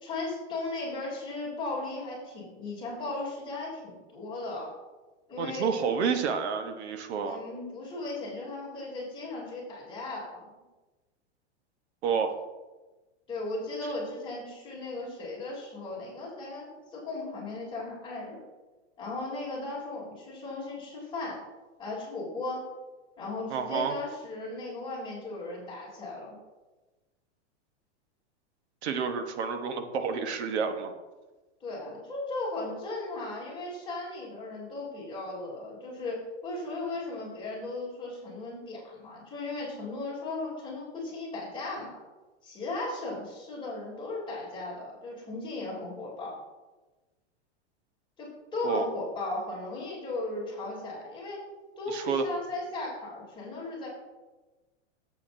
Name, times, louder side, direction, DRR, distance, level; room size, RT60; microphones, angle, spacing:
voice 1, 0.0-4.7 5.3-6.0 7.2-10.5 13.3-18.4 19.0-21.4 21.8-22.7 23.2-26.4 31.6-42.0 42.4-46.4 48.2-51.4 51.8-53.9, left 2 dB, 15° left, -6 dB, 3.3 m, -36 dB
voice 2, 5.4-7.4 12.0-12.3 23.5-24.0 28.8-30.9 48.6-48.9 51.9-52.2, right 6 dB, 65° right, 6 dB, 1.2 m, -29 dB
13.0 x 8.2 x 2.7 m, 1.2 s
supercardioid pair, 150°, 35 cm